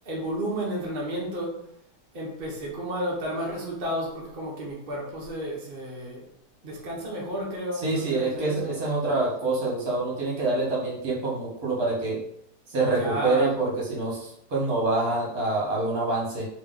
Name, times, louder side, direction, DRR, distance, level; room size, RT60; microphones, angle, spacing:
voice 1, 0.0-1.6 2.1-6.3 6.6-8.7 13.0-13.5, equal, 40° right, -4 dB, 0.8 m, -32 dB
voice 2, 7.7-12.2 12.7-16.5, right 2 dB, 60° right, -4 dB, 1.6 m, -26 dB
3.1 x 2.9 x 3.7 m, 0.74 s
omnidirectional pair, 1.8 m